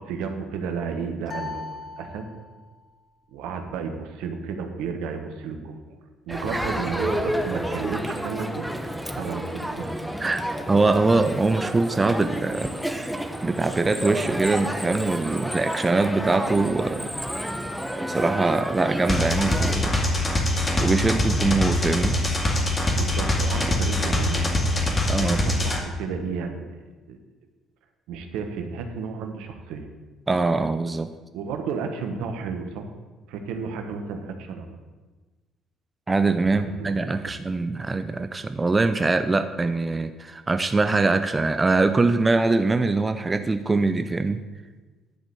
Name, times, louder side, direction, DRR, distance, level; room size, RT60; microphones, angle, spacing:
voice 1, 0.0-2.3 3.3-6.0 6.3-9.9 23.0-24.5 25.2-26.8 27.1-27.2 28.1-29.9 31.3-32.9 33.3-34.8 36.5-37.4, right 5 dB, 75° right, 6 dB, 1.2 m, -32 dB
sound 1, 1.3-2.7, left 4 dB, 55° left, 2.0 m, -38 dB
Crowd, 6.3-19.7, equal, ahead, 1.1 m, -30 dB
voice 2, 6.3-6.6 10.2-12.7 13.4-17.2 18.1-19.9 20.8-22.2 25.1-25.5 30.3-31.1 36.1-44.4, right 3 dB, 25° right, 10 dB, 0.6 m, -23 dB
sound 2, 19.1-25.8, left 1 dB, 30° left, 2.1 m, -23 dB
11.0 x 5.2 x 7.6 m, 1.3 s
hypercardioid pair, 55°, 0 cm